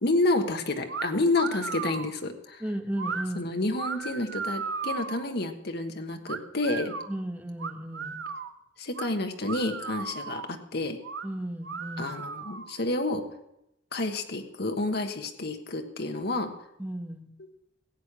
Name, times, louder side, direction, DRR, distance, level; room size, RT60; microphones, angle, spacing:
voice 1, 0.0-2.6 3.3-6.9 8.8-11.0 12.0-13.2 13.9-16.5, left 2 dB, 60° left, 5 dB, 1.4 m, -29 dB
sound 1, 0.9-1.1 1.3-2.1 3.0-3.2 3.7-5.3 6.3-7.1 7.6-8.5 8.9-9.1 9.4-10.5 11.0-11.3 11.6-12.8, right 5 dB, 75° right, 0.9 m, -35 dB
voice 2, 2.6-3.5 7.1-8.2 11.2-12.1 16.8-17.3, right 1 dB, 10° right, 6 dB, 1.1 m, -34 dB
16.0 x 8.5 x 6.1 m, 0.83 s
head